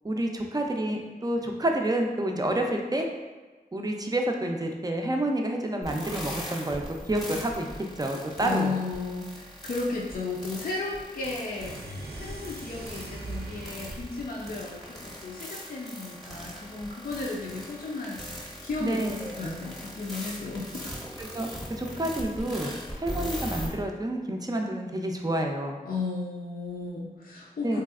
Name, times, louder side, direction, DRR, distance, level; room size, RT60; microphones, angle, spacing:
voice 1, 0.0-3.1 3.7-7.7 8.0-8.7 18.8-19.5 21.2-22.7 23.0-25.8 27.6-27.8, right 1 dB, 25° right, 2 dB, 0.4 m, -29 dB
sound 1, 5.8-23.7, equal, ahead, 0.8 m, -40 dB
voice 2, 8.1-11.8 12.1-20.9 25.8-27.8, left 3 dB, 65° left, -3 dB, 0.4 m, -34 dB
sound 2, 11.4-15.8, right 2 dB, 80° right, 0.4 m, -41 dB
3.1 x 2.7 x 2.4 m, 1.3 s
wide cardioid pair, 50°, 16 cm